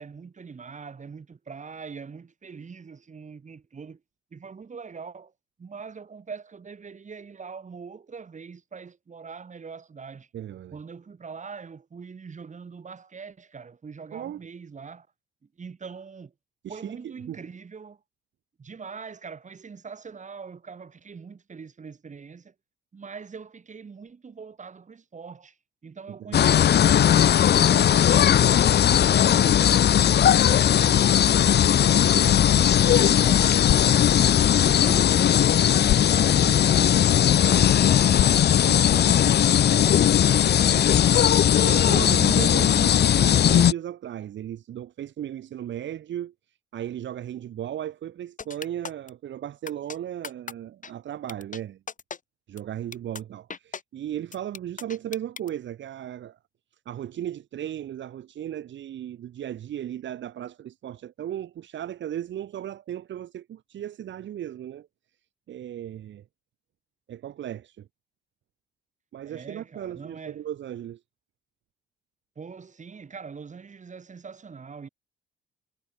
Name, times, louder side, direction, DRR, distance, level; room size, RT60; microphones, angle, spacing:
voice 1, 0.0-4.0 4.3-5.3 5.6-10.3 10.7-15.1 15.6-16.3 16.7-18.0 18.6-22.5 22.9-25.6 25.8-29.9 30.4-34.7 35.0-40.1 69.3-70.4 72.4-74.9, right 5 dB, 40° right, 7.7 m, -42 dB
voice 2, 10.3-10.8 14.1-14.4 16.6-17.4 26.2-26.4 34.7-35.3 40.4-41.0 41.6-46.3 46.7-51.8 52.5-56.4 56.8-64.9 65.5-66.2 67.1-67.9 69.1-71.0, right 11 dB, 70° right, 3.0 m, -36 dB
sound 1, 26.3-43.7, left 10 dB, 55° left, 1.1 m, -18 dB
sound 2, 33.5-39.5, left 15 dB, 85° left, 1.2 m, -34 dB
sound 3, 48.4-49.1 49.7-50.0 50.2-50.5 50.8-50.9 51.3-51.6 51.9-52.2 52.6-52.7 52.9-53.2 53.5-53.8 54.3-55.5, left 6 dB, 40° left, 7.1 m, -37 dB
cardioid pair, 90°, 20 cm